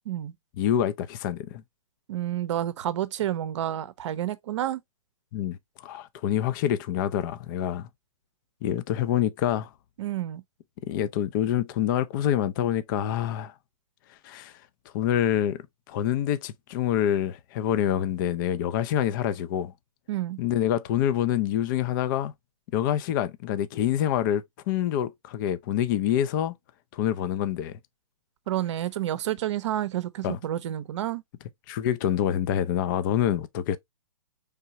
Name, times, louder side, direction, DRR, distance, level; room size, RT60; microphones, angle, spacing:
voice 1, 0.6-1.6 5.3-7.9 8.6-9.7 10.9-13.5 14.2-14.5 14.9-19.7 20.4-22.3 22.7-26.5 26.9-27.8 30.2-30.4 31.7-33.8, left 10 dB, 35° left, 0.5 m, -26 dB
voice 2, 2.1-4.8 10.0-10.4 20.1-20.4 28.5-31.2, right 12 dB, 55° right, 0.6 m, -29 dB
4.6 x 3.4 x 2.8 m
hypercardioid pair, 130°, 18 cm